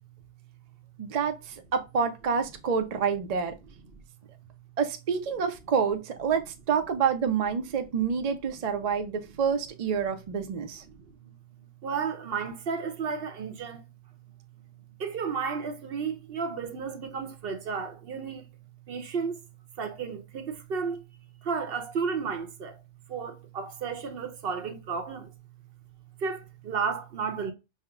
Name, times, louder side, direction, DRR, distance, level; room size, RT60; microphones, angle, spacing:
voice 1, 1.0-3.5 4.8-10.8, right 6 dB, 50° right, 0.5 m, -28 dB
voice 2, 10.9-11.3 11.8-13.8 15.0-18.4 18.9-19.4 19.8-21.0 21.4-22.8 23.1-25.3 26.2-27.5, right 5 dB, 65° right, 0.9 m, -33 dB
5.4 x 2.1 x 2.3 m
omnidirectional pair, 1.1 m